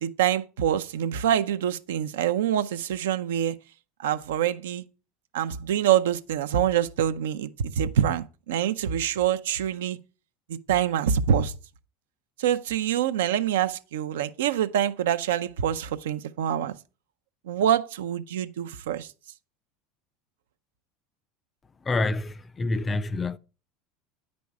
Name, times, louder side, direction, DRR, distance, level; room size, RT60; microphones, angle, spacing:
voice 1, 0.0-3.5 4.0-4.8 5.3-10.0 10.7-11.5 12.4-16.8 17.5-19.1, right 9 dB, 85° right, 0.5 m, -25 dB
voice 2, 21.9-23.4, left 2 dB, 25° left, 0.4 m, -27 dB
8.6 x 5.2 x 4.7 m
hypercardioid pair, 95°, 0 cm